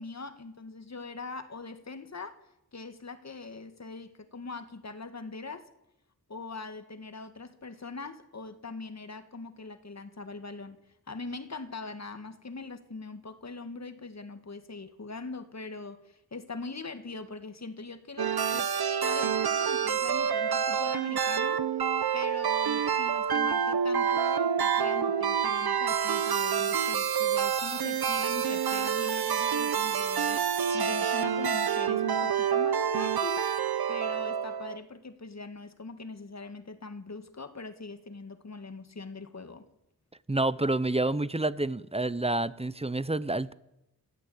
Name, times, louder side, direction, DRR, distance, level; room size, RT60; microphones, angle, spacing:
voice 1, 0.0-2.4 2.7-5.7 6.3-18.7 19.0-21.8 22.1-39.7, left 3 dB, 45° left, 10 dB, 1.8 m, -42 dB
sound 1, 18.2-34.8, right 8 dB, 75° right, 1.1 m, -28 dB
voice 2, 40.3-43.5, right 2 dB, 15° right, 17 dB, 0.8 m, -28 dB
27.5 x 14.5 x 8.7 m, 0.91 s
wide cardioid pair, 100°, 38 cm